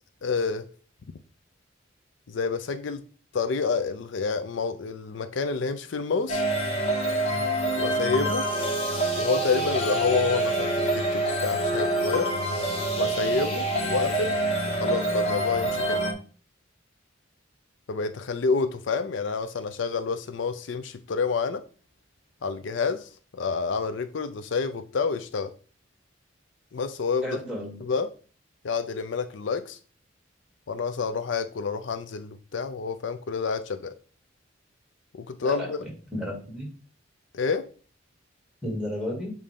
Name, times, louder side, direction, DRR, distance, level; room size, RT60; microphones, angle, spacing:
voice 1, 0.2-0.6 2.3-3.0 3.3-6.4 7.8-8.5 9.1-12.3 13.0-14.3 14.7-16.0 17.9-21.6 22.4-25.5 26.7-27.2 27.8-28.1 28.6-29.8 30.7-33.9 35.1-35.8 37.3-37.7, left 4 dB, 70° left, 0.5 m, -28 dB
sound 1, 6.3-16.1, right 1 dB, 30° left, 1.3 m, -26 dB
voice 2, 27.2-27.8 35.4-35.7 36.1-36.7 38.6-39.3, equal, 5° right, 2.1 m, -32 dB
7.3 x 2.7 x 5.1 m
head